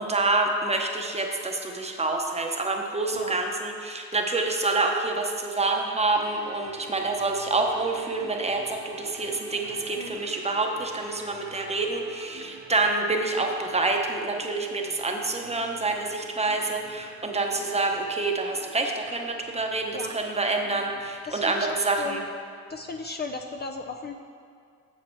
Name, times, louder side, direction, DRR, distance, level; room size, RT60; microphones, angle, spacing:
voice 1, 0.0-22.2, right 3 dB, 20° right, 2 dB, 0.9 m, -27 dB
sound 1, 6.1-21.2, right 3 dB, 60° right, 1.5 m, -47 dB
voice 2, 21.3-22.3 22.7-24.2, left 3 dB, 35° left, 4 dB, 0.5 m, -35 dB
7.8 x 6.8 x 4.5 m, 2.3 s
cardioid pair, 90°, 30 cm